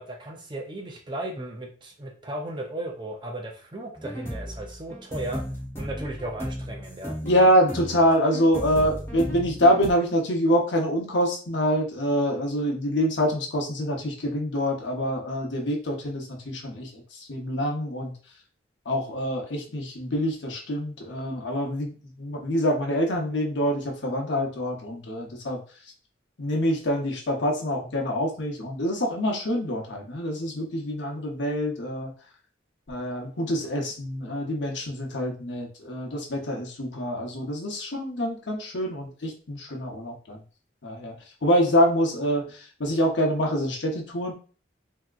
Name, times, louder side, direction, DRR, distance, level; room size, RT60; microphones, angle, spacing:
voice 1, 0.0-5.4 5.8-7.2, right 1 dB, 25° right, 2 dB, 0.5 m, -35 dB
sound 1, 4.0-9.9, equal, 15° left, 0.9 m, -35 dB
voice 2, 7.2-18.1 18.9-25.6 26.4-32.1 32.9-40.4 40.8-41.1 41.4-44.3, equal, 75° left, 0 dB, 0.9 m, -25 dB
3.5 x 2.8 x 2.4 m, 0.38 s
head